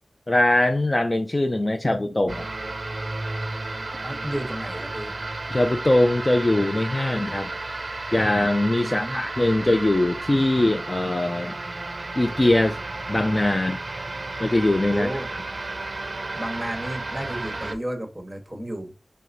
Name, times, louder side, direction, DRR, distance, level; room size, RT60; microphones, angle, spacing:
voice 1, 0.3-2.5 5.5-7.5 8.1-11.6 12.2-12.8 13.1-13.8 14.4-15.1, left 1 dB, 35° left, 0.4 m, -21 dB
sound 1, 2.3-17.7, right 2 dB, 50° right, 0.5 m, -33 dB
voice 2, 4.0-5.1 8.8-9.2 14.9-15.3 16.3-18.9, right 1 dB, 10° right, 1.2 m, -32 dB
4.7 x 3.3 x 2.5 m
wide cardioid pair, 65°, 0 cm